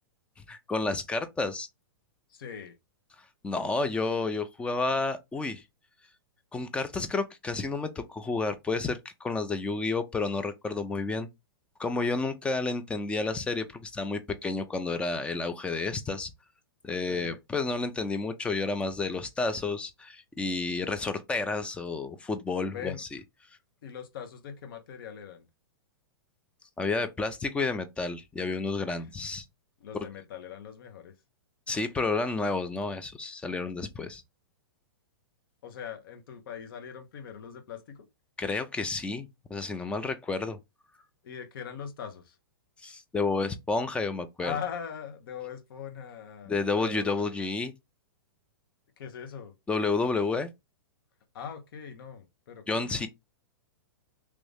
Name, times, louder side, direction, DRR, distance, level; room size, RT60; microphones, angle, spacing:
voice 1, 0.5-1.7 3.4-5.6 6.5-11.3 11.8-16.3 16.8-23.1 26.8-29.5 31.7-34.2 38.4-40.6 42.8-44.6 46.5-47.7 49.7-50.5 52.7-53.1, left 3 dB, 10° left, 0.4 m, -30 dB
voice 2, 2.3-2.8 17.1-17.4 22.6-23.0 23.8-25.5 29.8-31.1 35.6-38.1 41.2-42.4 44.4-47.2 49.0-49.5 51.3-53.0, left 8 dB, 65° left, 0.9 m, -41 dB
3.1 x 2.6 x 3.3 m
hypercardioid pair, 130°, 13 cm